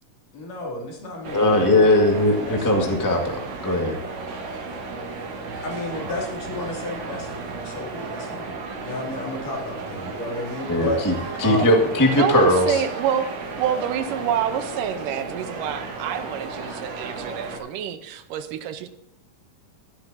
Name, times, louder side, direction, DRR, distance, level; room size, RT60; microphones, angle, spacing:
voice 1, 0.3-2.9 5.6-7.3 7.6-8.5 8.8-11.8, left 1 dB, 70° left, -2 dB, 4.4 m, -32 dB
sound 1, 1.2-17.6, right 3 dB, 55° right, 2.5 m, -34 dB
voice 2, 1.3-3.9 10.7-11.1 11.4-12.8, left 1 dB, 15° left, 1 dB, 0.6 m, -19 dB
voice 3, 12.1-13.3 13.6-18.9, right 9 dB, 85° right, 9 dB, 2.5 m, -27 dB
15.0 x 12.0 x 2.8 m, 0.82 s
omnidirectional pair, 3.9 m